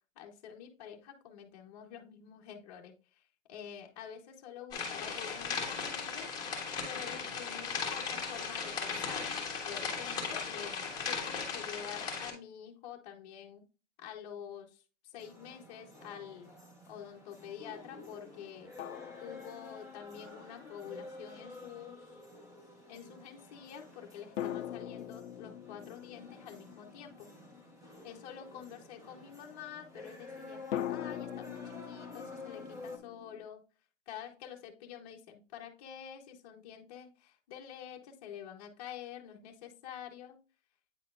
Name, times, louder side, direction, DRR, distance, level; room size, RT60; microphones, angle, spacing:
voice 1, 0.1-6.3 6.8-9.3 9.6-13.6 14.0-16.5 16.9-18.7 19.2-22.2 22.9-27.3 28.0-30.6 30.9-33.6 34.1-40.4, left 9 dB, 30° left, 1 dB, 1.0 m, -48 dB
sound 1, 4.7-12.3, left 5 dB, 10° left, 1.4 m, -37 dB
sound 2, 15.2-15.3 18.8-20.3 24.4-28.0 30.7-33.5, left 11 dB, 80° left, 0.6 m, -42 dB
sound 3, 15.2-33.0, left 2 dB, 10° right, 1.1 m, -51 dB
9.0 x 4.2 x 2.4 m, 0.35 s
hypercardioid pair, 150°, 38 cm